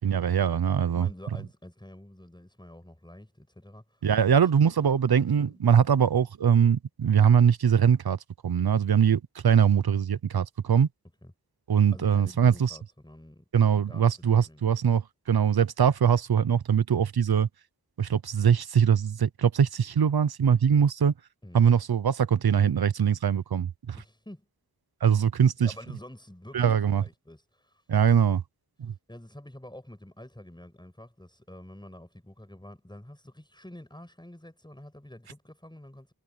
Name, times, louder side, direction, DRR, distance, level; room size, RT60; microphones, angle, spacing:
voice 1, 0.0-1.1 4.0-8.2 8.4-10.9 11.7-12.8 13.5-17.5 18.0-21.1 21.5-24.0 25.0-25.7 26.5-27.0 27.9-28.4 28.8-28.9, right 8 dB, 85° right, 0.8 m, -22 dB
voice 2, 0.9-5.6 11.2-11.3 11.9-13.4 13.7-14.1 14.4-14.6 21.4-21.7 23.9-24.5 25.6-27.8 28.2-28.4 29.1-36.1, left 1 dB, 10° left, 7.8 m, -48 dB
wide cardioid pair, 85°, 36 cm